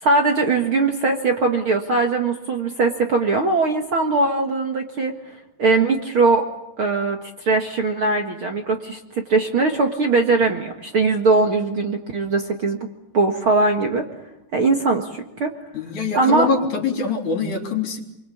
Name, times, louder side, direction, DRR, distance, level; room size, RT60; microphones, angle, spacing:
voice 1, 0.0-5.1 5.6-6.4 6.8-9.0 9.3-12.8 13.1-14.0 14.5-15.5 16.1-16.5, right 3 dB, 50° right, 3 dB, 1.5 m, -20 dB
voice 2, 15.7-18.0, left 4 dB, 45° left, 2 dB, 4.7 m, -23 dB
28.5 x 22.5 x 8.6 m, 0.86 s
omnidirectional pair, 4.8 m